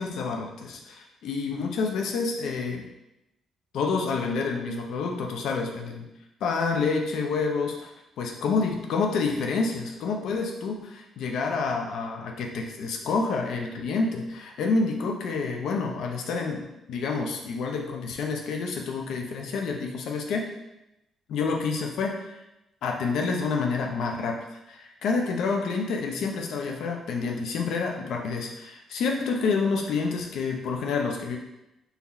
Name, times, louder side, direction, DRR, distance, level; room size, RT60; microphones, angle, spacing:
voice 1, 0.0-2.8 3.7-6.0 6.4-7.9 8.2-20.5 21.3-22.4 22.8-24.4 24.7-31.4, left 4 dB, 75° left, 2 dB, 0.7 m, -28 dB
4.0 x 2.8 x 4.1 m, 0.92 s
supercardioid pair, 60°, 0 cm